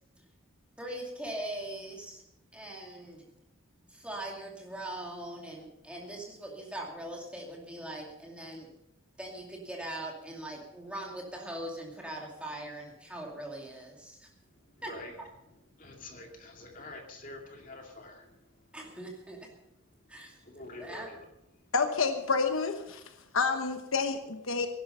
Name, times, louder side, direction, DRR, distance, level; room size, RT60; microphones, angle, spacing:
voice 1, 0.8-2.2 2.5-3.2 3.9-8.7 9.2-14.3 14.8-14.9 15.2-15.3 18.7-19.5 20.1-20.4 20.8-21.1, right 1 dB, 5° right, -2 dB, 2.5 m, -41 dB
voice 2, 14.8-15.1 15.8-18.4 20.4-21.2, left 2 dB, 40° left, 2 dB, 2.5 m, -46 dB
voice 3, 21.7-23.0 23.3-24.7, left 4 dB, 70° left, 7 dB, 1.1 m, -29 dB
17.5 x 11.0 x 5.6 m, 0.89 s
head